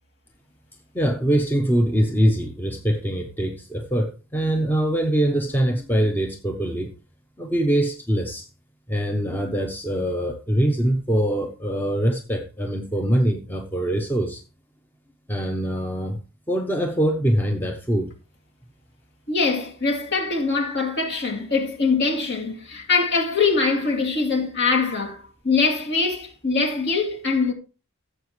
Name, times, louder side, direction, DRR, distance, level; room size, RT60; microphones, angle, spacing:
voice 1, 0.9-6.9 7.4-8.5 8.9-14.4 15.3-16.2 16.5-18.1, right 1 dB, 10° left, 0.8 m, -23 dB
voice 2, 19.3-27.5, left 4 dB, 50° left, 2.6 m, -23 dB
14.5 x 7.3 x 3.1 m
head